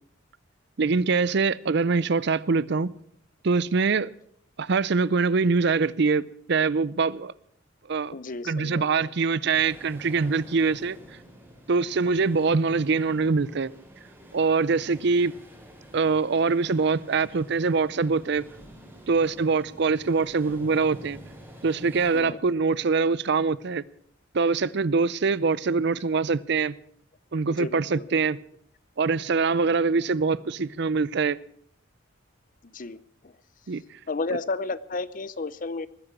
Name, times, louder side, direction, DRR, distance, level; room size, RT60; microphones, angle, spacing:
voice 1, 0.8-2.9 3.4-4.1 4.6-7.3 7.9-8.1 8.4-11.0 11.7-13.7 14.3-15.4 15.9-18.5 19.1-21.2 21.6-23.8 24.3-26.7 27.3-28.4 29.0-31.4 33.7-33.8, right 4 dB, 55° right, 0.5 m, -24 dB
voice 2, 8.1-9.1 22.1-22.4 27.5-28.0 32.6-33.3 34.1-35.9, left 3 dB, 40° left, 0.6 m, -33 dB
sound 1, 9.5-22.2, equal, 10° right, 4.0 m, -48 dB
20.0 x 10.0 x 6.0 m
head